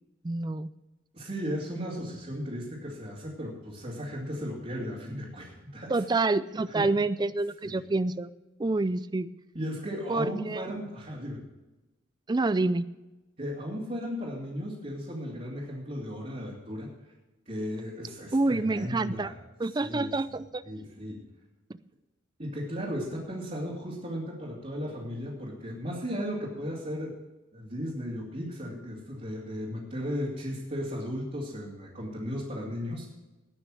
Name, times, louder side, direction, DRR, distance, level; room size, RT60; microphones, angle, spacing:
voice 1, 0.2-0.7 5.9-8.3 8.6-9.3 10.1-10.6 12.3-12.9 18.3-19.3 19.6-20.6, right 2 dB, 20° right, 16 dB, 0.4 m, -27 dB
voice 2, 1.1-6.0 6.7-6.9 9.5-11.4 13.4-16.9 17.5-19.4 19.8-20.1 20.6-21.2 22.4-27.1 27.5-33.1, equal, 35° right, -6 dB, 2.7 m, -35 dB
19.0 x 6.4 x 6.3 m, 1.1 s
head